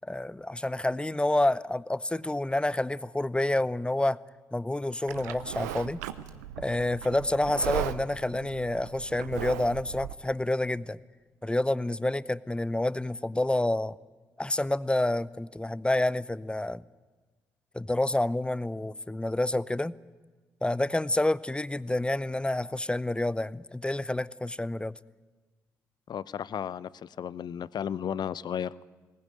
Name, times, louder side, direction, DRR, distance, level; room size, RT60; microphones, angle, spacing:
voice 1, 0.0-4.2 4.5-6.0 6.6-11.0 11.4-13.9 14.4-16.8 17.7-19.9 20.6-24.9, left 1 dB, 10° left, 19 dB, 0.7 m, -28 dB
Livestock farm animals working animals, 5.1-10.1, right 12 dB, 80° right, 0.7 m, -37 dB
voice 2, 26.1-28.8, left 9 dB, 50° left, 19 dB, 0.7 m, -34 dB
22.0 x 19.0 x 9.3 m, 1.3 s
figure-of-eight pair, 40°, 9 cm